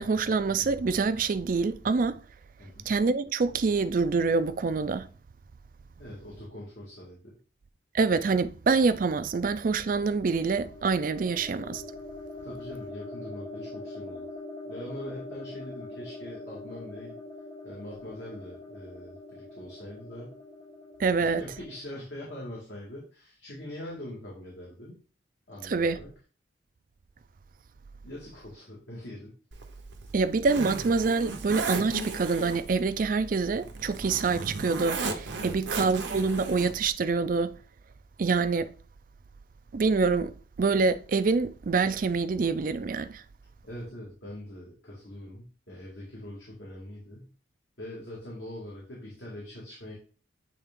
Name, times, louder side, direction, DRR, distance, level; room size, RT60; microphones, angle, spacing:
voice 1, 0.0-2.2 2.9-5.1 7.9-11.8 21.0-21.4 25.6-26.0 30.1-37.6 38.2-38.7 39.7-40.3 40.6-43.2, right 4 dB, 45° right, 0.4 m, -26 dB
voice 2, 6.0-7.2 12.4-14.3 14.6-17.1 17.6-20.4 21.2-25.0 25.5-26.1 28.0-29.3 35.4-35.6 43.6-47.3 47.8-49.9, left 1 dB, 65° left, 2.0 m, -42 dB
sound 1, 10.0-21.8, left 2 dB, 20° left, 0.6 m, -43 dB
Zipper (clothing), 29.5-36.9, right 3 dB, 75° right, 0.8 m, -36 dB
8.2 x 3.5 x 3.6 m
head